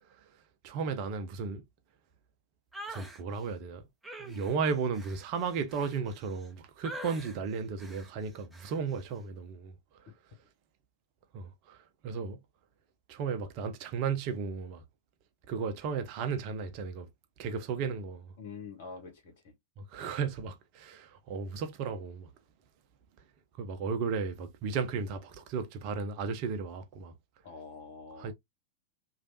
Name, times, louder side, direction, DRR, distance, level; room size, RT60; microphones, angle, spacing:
voice 1, 0.6-1.6 2.9-3.8 4.2-9.8 11.3-12.4 13.1-14.8 15.5-17.1 17.4-18.3 19.8-22.3 23.6-27.1 28.2-28.3, right 5 dB, 45° right, 0.6 m, -34 dB
sound 1, 2.7-3.2 4.0-6.5 6.8-7.4 7.8-8.1 8.5-8.8, right 1 dB, 5° right, 0.7 m, -45 dB
voice 2, 18.4-19.5 27.4-28.3, left 4 dB, 55° left, 1.3 m, -46 dB
3.1 x 2.4 x 2.7 m
figure-of-eight pair, 90°, 0 cm